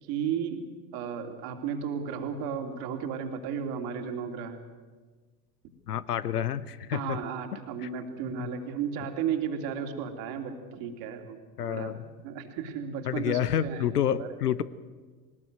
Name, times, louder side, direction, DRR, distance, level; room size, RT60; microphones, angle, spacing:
voice 1, 0.0-4.6 6.9-12.0 12.2-14.4, right 7 dB, 50° right, 5 dB, 2.9 m, -34 dB
voice 2, 5.9-7.2 11.6-12.0 13.1-14.6, left 10 dB, 75° left, 16 dB, 0.9 m, -28 dB
21.0 x 19.5 x 7.9 m, 1.4 s
figure-of-eight pair, 75°, 47 cm